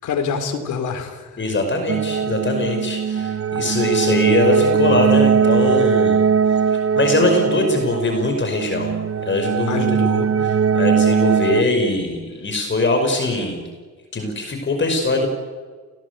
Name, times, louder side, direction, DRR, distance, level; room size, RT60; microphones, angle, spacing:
voice 1, 0.0-1.5 9.7-10.3, left 6 dB, 75° left, 6 dB, 4.3 m, -26 dB
voice 2, 1.4-6.2 6.7-10.0 10.4-13.6 14.1-15.3, left 2 dB, 40° left, 4 dB, 5.3 m, -22 dB
sound 1, 1.9-11.6, right 6 dB, 50° right, 1.2 m, -19 dB
29.0 x 18.0 x 8.3 m, 1.5 s
cardioid pair, 90°, 30 cm